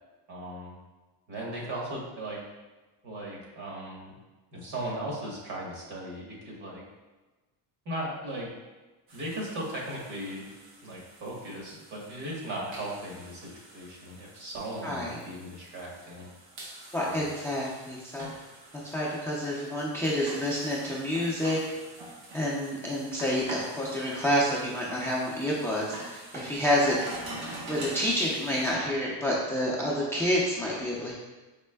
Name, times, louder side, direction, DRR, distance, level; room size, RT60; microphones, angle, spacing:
voice 1, 0.3-0.8 1.3-2.4 3.0-4.1 4.5-6.8 7.8-8.5 9.1-10.5 10.8-16.3 17.0-17.3, right 1 dB, 65° right, -3 dB, 1.3 m, -37 dB
sound 1, 9.1-28.7, right 1 dB, 85° right, 1.0 m, -45 dB
voice 2, 14.8-15.2 16.9-18.3 18.8-21.6 22.3-27.0 27.4-31.1, equal, 5° left, -5 dB, 0.4 m, -28 dB
4.3 x 3.1 x 2.2 m, 1.2 s
cardioid pair, 125°, 43 cm